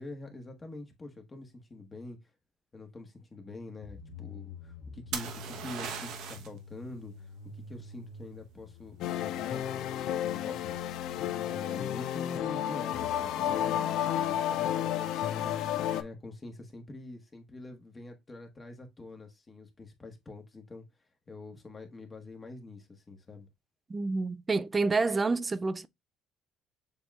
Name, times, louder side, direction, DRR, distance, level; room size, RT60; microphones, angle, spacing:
voice 1, 0.0-2.2 2.7-10.8 11.1-15.5 15.9-20.8 21.3-23.5, left 3 dB, 20° left, 1.1 m, -45 dB
sound 1, 3.8-12.7, left 4 dB, 85° left, 1.0 m, -49 dB
sound 2, 5.1-6.6 10.3-10.7, right 7 dB, 70° right, 0.9 m, -38 dB
sound 3, 9.0-16.0, left 11 dB, 70° left, 0.5 m, -31 dB
voice 2, 23.9-25.9, right 3 dB, 20° right, 0.3 m, -28 dB
6.9 x 2.9 x 2.3 m
cardioid pair, 115°, 0 cm